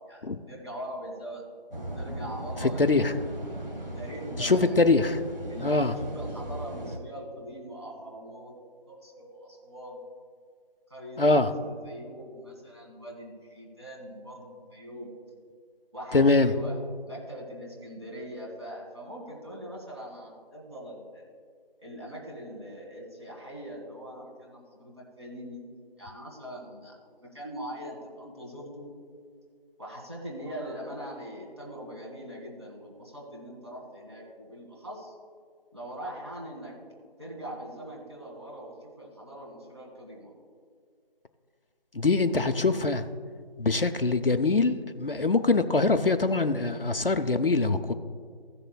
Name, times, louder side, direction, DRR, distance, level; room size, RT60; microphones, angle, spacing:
voice 1, 0.1-1.5 1.9-3.1 3.7-4.7 5.5-8.5 8.9-10.0 10.9-15.1 15.9-16.8 17.1-21.2 21.8-25.6 26.0-28.9 29.8-35.1 35.7-36.8 37.2-40.3, equal, 30° right, -3 dB, 2.5 m, -41 dB
sound 1, 1.7-7.0, right 1 dB, 65° right, 1.8 m, -37 dB
voice 2, 2.6-3.1 4.4-5.2 5.6-5.9 11.2-11.5 16.1-16.5 41.9-43.1 43.6-47.9, left 3 dB, 65° left, 8 dB, 0.9 m, -23 dB
17.0 x 7.0 x 2.3 m, 2.1 s
figure-of-eight pair, 175°, 30 cm